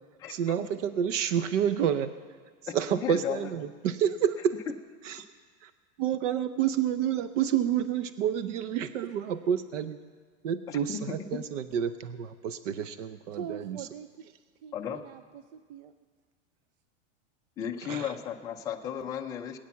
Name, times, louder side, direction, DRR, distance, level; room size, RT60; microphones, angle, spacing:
voice 1, 0.3-2.1 2.7-4.5 5.0-5.2 5.6-5.7 6.0-10.0 10.4-13.8 17.8-18.1, right 9 dB, 90° right, 12 dB, 0.8 m, -29 dB
voice 2, 3.0-3.4 10.7-11.0 11.3-11.4 14.7-15.0 17.6-19.6, left 9 dB, 10° left, 0 dB, 0.4 m, -34 dB
voice 3, 13.3-15.9, right 8 dB, 50° right, 10 dB, 0.6 m, -44 dB
19.5 x 9.1 x 7.1 m, 1.5 s
supercardioid pair, 165°, 36 cm